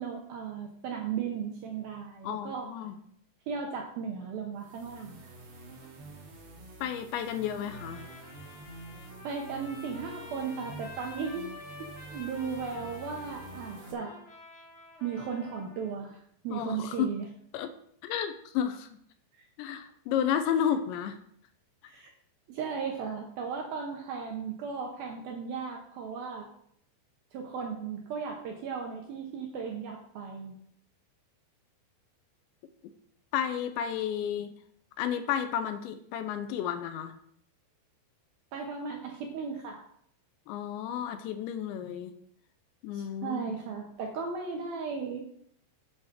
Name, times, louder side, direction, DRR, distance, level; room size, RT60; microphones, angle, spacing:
voice 1, 0.0-2.7 3.5-5.2 9.2-14.2 15.0-17.3 21.9-22.1 22.5-26.5 27.3-30.6 38.5-39.9 42.9-45.2, right 6 dB, 70° right, 1 dB, 2.4 m, -36 dB
voice 2, 2.2-2.9 6.8-8.1 16.5-17.1 17.5-17.7 18.0-19.0 19.6-21.2 33.3-34.5 35.0-37.1 40.5-42.1 42.8-43.6, left 9 dB, 80° left, 9 dB, 2.9 m, -32 dB
sound 1, 4.5-13.9, right 2 dB, 55° right, 1.5 m, -48 dB
Trumpet, 7.4-16.0, left 2 dB, 45° left, 1.8 m, -49 dB
8.8 x 7.0 x 6.5 m, 0.66 s
omnidirectional pair, 5.5 m